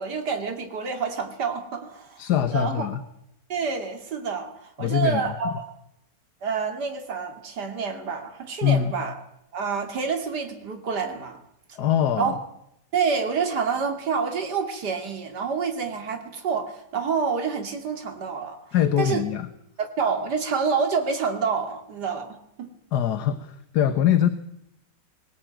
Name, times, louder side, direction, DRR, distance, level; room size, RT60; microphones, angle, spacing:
voice 1, 0.0-2.2 2.5-2.8 3.5-5.5 6.4-9.1 9.5-11.4 12.2-12.3 12.9-18.6 19.0-19.2 19.8-22.7, right 5 dB, 65° right, 5 dB, 3.1 m, -28 dB
voice 2, 2.2-3.0 4.8-5.3 8.6-8.9 11.7-12.3 18.7-19.5 22.9-24.3, left 10 dB, 65° left, 11 dB, 1.5 m, -23 dB
22.0 x 18.5 x 9.0 m, 0.80 s
omnidirectional pair, 1.9 m